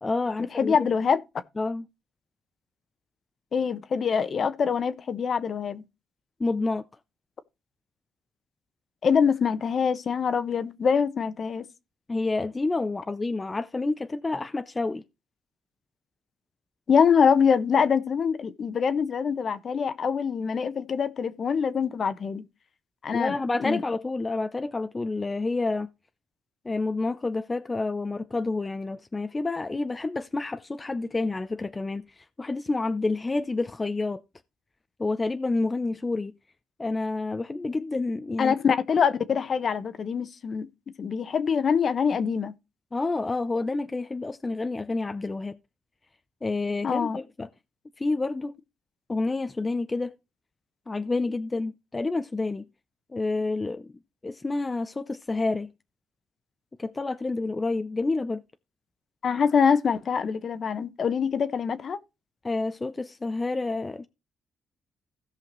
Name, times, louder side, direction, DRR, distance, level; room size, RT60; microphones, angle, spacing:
voice 1, 0.0-0.7 1.6-1.9 6.4-6.8 12.1-15.0 23.1-25.9 26.6-34.2 35.0-36.3 36.8-38.6 42.9-45.6 46.4-47.5 48.0-48.5 49.1-50.2 50.9-52.6 53.1-53.9 54.2-55.7 56.8-58.4 62.4-64.1, left 3 dB, 20° left, 0.6 m, -29 dB
voice 2, 0.6-1.2 3.5-5.8 9.0-11.6 16.9-22.4 23.0-23.8 38.4-40.7 41.0-42.5 46.8-47.2 59.2-62.0, left 6 dB, 50° left, 1.0 m, -24 dB
16.5 x 5.7 x 3.0 m
cardioid pair, 90°, 0 cm